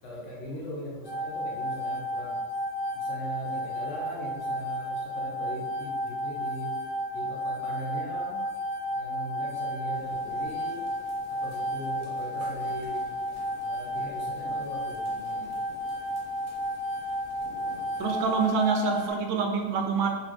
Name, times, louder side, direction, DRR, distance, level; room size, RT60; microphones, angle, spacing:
voice 1, 0.0-2.4 2.9-6.8 7.1-8.5 8.9-10.9 11.3-13.1 13.6-15.7, right 1 dB, 75° left, -3 dB, 1.3 m, -40 dB
sound 1, 1.0-19.1, equal, 50° left, 0.9 m, -32 dB
sound 2, 9.9-18.6, right 1 dB, 50° right, 1.1 m, -51 dB
voice 2, 18.0-20.1, right 5 dB, 85° right, 3 dB, 1.0 m, -26 dB
4.0 x 3.0 x 3.1 m, 1.4 s
omnidirectional pair, 1.3 m